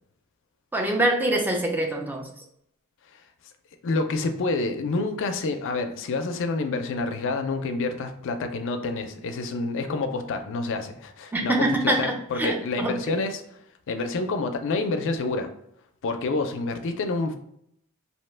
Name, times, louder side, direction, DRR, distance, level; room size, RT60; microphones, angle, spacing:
voice 1, 0.7-2.3 11.3-13.2, right 1 dB, 10° right, 1 dB, 0.4 m, -25 dB
voice 2, 3.8-13.4 13.9-15.5 16.0-17.4, left 3 dB, 60° left, 6 dB, 0.4 m, -28 dB
2.7 x 2.1 x 3.2 m, 0.72 s
head